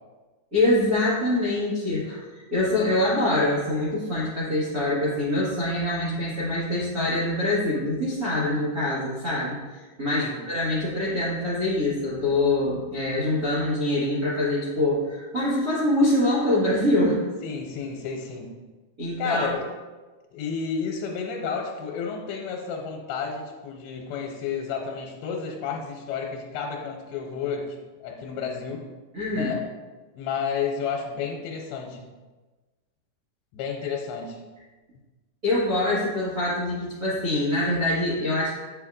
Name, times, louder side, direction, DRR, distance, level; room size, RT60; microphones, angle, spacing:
voice 1, 0.5-9.6 10.0-17.2 19.0-19.5 29.1-29.5 35.4-38.5, left 1 dB, 65° right, -11 dB, 0.9 m, -24 dB
voice 2, 17.4-18.6 19.2-19.7 20.3-28.9 29.3-29.6 30.2-32.1 33.5-34.4, left 6 dB, 90° left, 0 dB, 2.6 m, -31 dB
8.6 x 5.7 x 2.5 m, 1.3 s
omnidirectional pair, 4.5 m